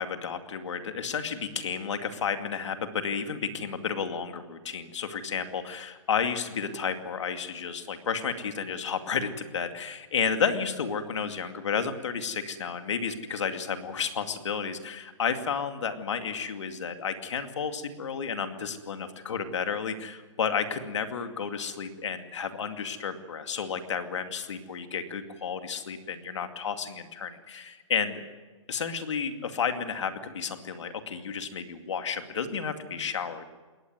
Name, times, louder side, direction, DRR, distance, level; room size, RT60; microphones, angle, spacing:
voice 1, 0.0-28.2 28.7-33.4, left 6 dB, 60° left, 7 dB, 2.4 m, -32 dB
21.0 x 18.5 x 9.4 m, 1.3 s
hypercardioid pair, 175°, 17 cm